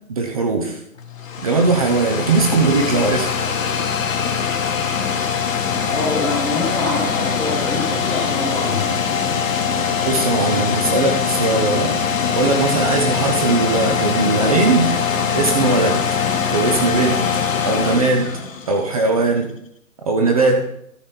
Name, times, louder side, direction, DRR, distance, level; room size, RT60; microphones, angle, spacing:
voice 1, 0.1-0.8 1.4-3.3 10.0-11.9 12.3-14.9 15.3-16.0 16.5-17.3 17.6-18.3 18.7-19.5 20.1-20.7, right 3 dB, 25° right, 3 dB, 0.9 m, -19 dB
sound 1, 1.0-19.1, left 6 dB, 60° left, 1.9 m, -22 dB
voice 2, 5.7-8.8, left 2 dB, ahead, -6 dB, 1.0 m, -25 dB
13.0 x 5.1 x 5.9 m, 0.72 s
hypercardioid pair, 165°, 43 cm